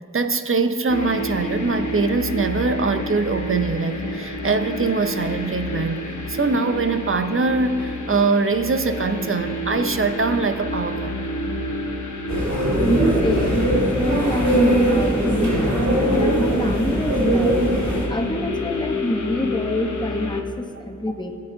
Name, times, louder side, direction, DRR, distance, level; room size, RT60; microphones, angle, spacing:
voice 1, 0.1-6.0 6.3-11.2, right 3 dB, 45° right, 9 dB, 0.6 m, -22 dB
sound 1, 0.9-20.4, left 2 dB, 70° left, 1.0 m, -29 dB
sound 2, 12.3-18.1, right 1 dB, 60° right, 2.0 m, -20 dB
voice 2, 13.2-17.7 18.1-21.4, left 1 dB, 15° left, 4 dB, 1.0 m, -26 dB
18.0 x 8.5 x 2.7 m, 2.7 s
wide cardioid pair, 55°, 31 cm